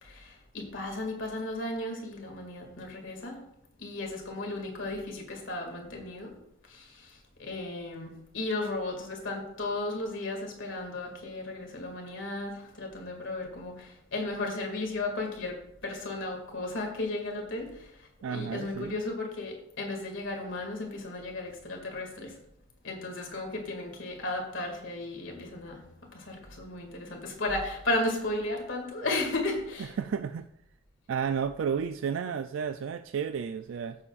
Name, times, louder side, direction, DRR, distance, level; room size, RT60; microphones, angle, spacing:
voice 1, 0.0-3.4 3.8-6.3 6.7-17.9 18.3-22.3 22.8-29.9, left 2 dB, 65° left, 2 dB, 2.2 m, -35 dB
voice 2, 18.2-19.0 29.8-30.4 31.1-34.0, right 7 dB, 65° right, 9 dB, 0.3 m, -32 dB
15.0 x 7.0 x 2.4 m, 0.79 s
head